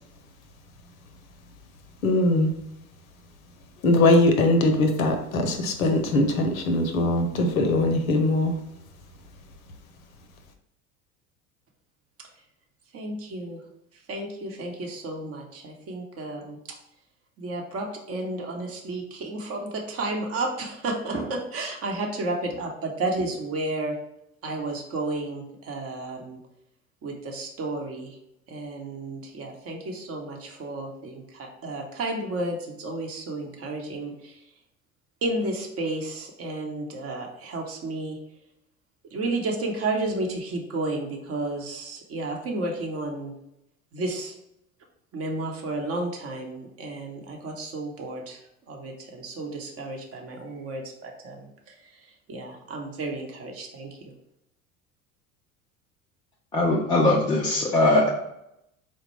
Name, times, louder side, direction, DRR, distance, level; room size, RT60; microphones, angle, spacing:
voice 1, 2.0-2.5 3.8-8.5, left 2 dB, 75° left, 5 dB, 0.7 m, -21 dB
voice 2, 12.9-13.6 14.1-16.6 17.4-24.0 24.4-26.4 27.0-28.2 28.5-34.4 35.2-38.2 39.1-43.3 43.9-44.4 45.1-48.4 48.7-51.7 52.0-53.9, right 2 dB, 35° right, 2 dB, 0.8 m, -32 dB
voice 3, 56.5-58.1, left 2 dB, 10° left, -4 dB, 0.3 m, -20 dB
4.2 x 2.1 x 3.1 m, 0.81 s
figure-of-eight pair, 75°, 42 cm